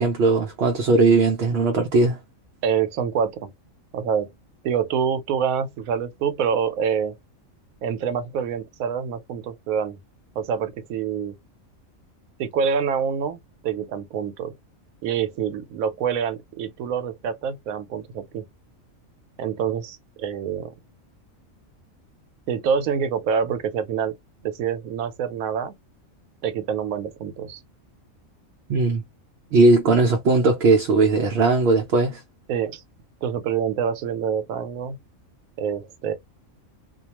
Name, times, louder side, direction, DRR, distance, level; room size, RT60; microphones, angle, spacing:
voice 1, 0.0-2.2 28.7-29.0 29.5-32.2, right 3 dB, 65° right, 0.7 m, -18 dB
voice 2, 2.6-3.5 3.9-4.3 4.6-7.2 7.8-10.0 10.4-11.3 12.4-14.5 15.0-18.5 19.4-20.7 22.5-24.2 24.4-25.7 26.4-27.6 32.5-32.8 33.2-35.0 35.6-36.1, right 7 dB, 85° right, 1.0 m, -26 dB
2.3 x 2.3 x 2.8 m
omnidirectional pair, 1.4 m